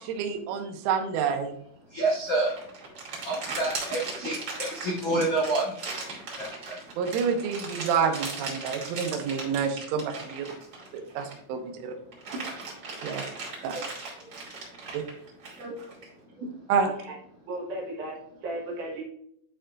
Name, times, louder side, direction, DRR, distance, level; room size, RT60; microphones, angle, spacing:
voice 1, 0.2-1.5 7.0-10.5 11.2-11.9 13.0-13.2 13.6-13.8 14.9-15.0 16.7-16.9, right 6 dB, 85° right, 4 dB, 3.3 m, -28 dB
voice 2, 1.9-2.5 3.2-5.7 6.4-6.8, right 2 dB, 80° left, -6 dB, 1.3 m, -28 dB
sound 1, 2.3-11.5 11.9-16.1, right 3 dB, 40° right, 2.2 m, -38 dB
voice 3, 12.3-13.4 13.7-13.9 14.2-15.2 15.5-17.2 17.5-19.0, right 1 dB, 70° right, -2 dB, 1.9 m, -39 dB
11.5 x 4.4 x 2.5 m, 0.71 s
omnidirectional pair, 5.6 m